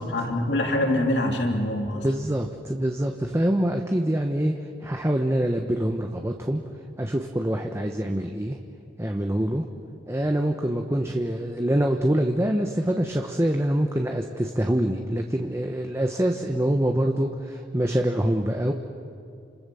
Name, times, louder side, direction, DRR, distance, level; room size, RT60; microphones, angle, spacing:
voice 1, 0.0-2.1, left 1 dB, 75° left, 2 dB, 3.2 m, -24 dB
voice 2, 1.9-4.5 4.8-6.6 7.0-8.6 9.0-9.6 10.1-18.7, right 1 dB, 15° right, 3 dB, 1.1 m, -25 dB
29.5 x 27.5 x 7.1 m, 2.5 s
head